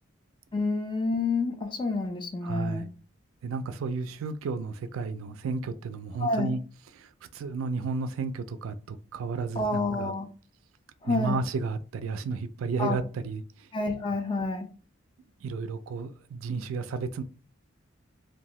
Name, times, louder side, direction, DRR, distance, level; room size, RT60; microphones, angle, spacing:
voice 1, 0.5-2.9 6.2-6.6 9.6-10.3 11.0-11.4 12.8-13.0 13.7-14.7, left 3 dB, 25° left, 0.4 m, -28 dB
voice 2, 2.4-2.9 3.4-6.6 7.0-10.1 11.0-13.7 15.4-17.2, right 4 dB, 85° right, 0.3 m, -33 dB
2.7 x 2.1 x 3.0 m
head